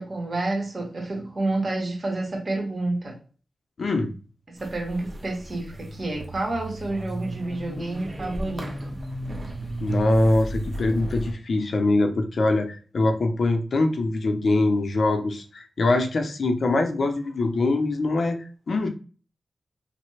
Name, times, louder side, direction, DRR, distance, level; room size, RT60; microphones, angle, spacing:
voice 1, 0.0-3.1 4.5-9.0, right 2 dB, 50° right, 1.5 m, -29 dB
voice 2, 3.8-4.1 9.8-18.9, left 2 dB, 70° left, 0.6 m, -23 dB
sound 1, 4.6-11.3, right 1 dB, 30° right, 1.1 m, -34 dB
3.2 x 2.1 x 3.2 m
cardioid pair, 50°, 0 cm